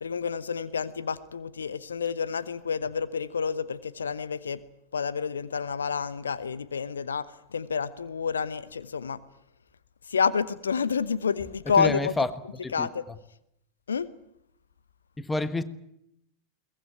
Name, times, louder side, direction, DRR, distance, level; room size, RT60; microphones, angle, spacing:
voice 1, 0.0-4.6 4.9-9.2 10.1-12.1 12.7-13.0 13.9-14.1, left 6 dB, 70° left, 0.9 m, -29 dB
voice 2, 11.8-12.3 12.6-12.9 15.2-15.6, left 2 dB, 10° left, 1.4 m, -28 dB
22.5 x 19.5 x 9.4 m
figure-of-eight pair, 90°, 0 cm